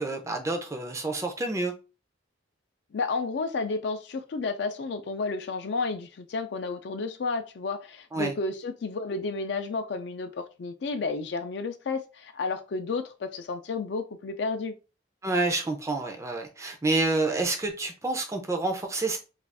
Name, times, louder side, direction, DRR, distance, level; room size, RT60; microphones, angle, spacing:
voice 1, 0.0-1.7 8.1-8.3 15.2-19.2, right 2 dB, 15° right, 0.4 m, -28 dB
voice 2, 2.9-14.7, left 4 dB, 60° left, 0.4 m, -31 dB
2.5 x 2.3 x 3.4 m
head